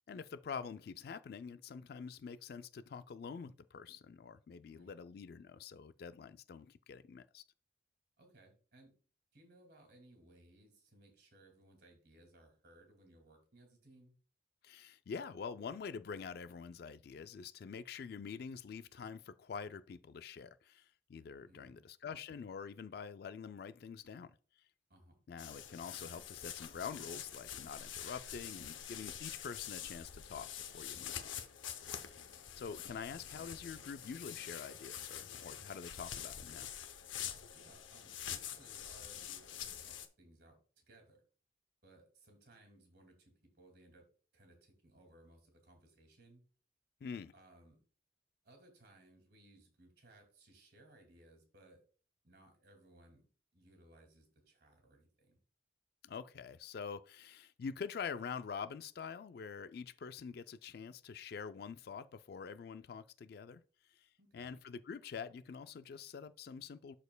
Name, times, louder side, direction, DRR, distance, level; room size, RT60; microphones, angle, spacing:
voice 1, 0.1-7.4 14.6-24.3 25.3-31.4 32.6-36.7 47.0-47.3 56.0-63.6 64.3-67.0, left 6 dB, 55° left, 0.3 m, -46 dB
voice 2, 4.7-5.0 8.2-8.9 9.3-14.1 21.5-21.9 24.9-25.2 37.5-41.2 41.8-44.1 44.3-46.4 47.3-47.8 48.4-51.8 52.2-53.2 53.5-55.4 64.2-64.6, right 1 dB, 55° right, 2.3 m, -63 dB
sound 1, 25.4-40.1, left 9 dB, 90° left, 0.7 m, -46 dB
12.0 x 4.3 x 2.2 m
head